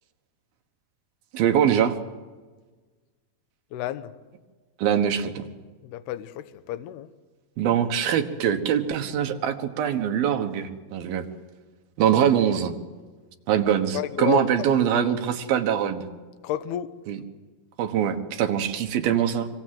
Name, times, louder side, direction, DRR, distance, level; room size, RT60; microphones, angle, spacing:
voice 1, 1.3-2.0 4.8-5.5 7.6-11.3 12.0-12.7 13.5-16.1 17.1-17.2 17.8-19.5, right 9 dB, 65° right, 3.0 m, -23 dB
voice 2, 3.7-4.1 5.8-7.1 13.9-14.4 16.4-16.9, left 13 dB, 75° left, 2.8 m, -30 dB
25.5 x 25.0 x 7.7 m
omnidirectional pair, 4.9 m